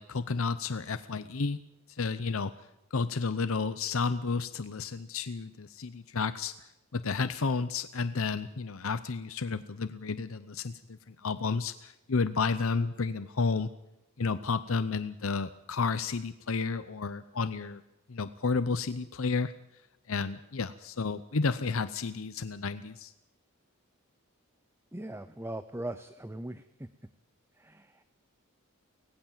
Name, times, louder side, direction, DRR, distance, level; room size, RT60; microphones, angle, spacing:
voice 1, 0.0-1.6 1.9-2.5 2.9-13.7 14.2-17.8 18.1-19.5 20.1-23.1, left 4 dB, 65° left, 12 dB, 0.7 m, -31 dB
voice 2, 24.9-26.9 27.6-28.0, right 1 dB, 10° right, 12 dB, 0.7 m, -40 dB
24.5 x 18.5 x 7.4 m, 0.91 s
head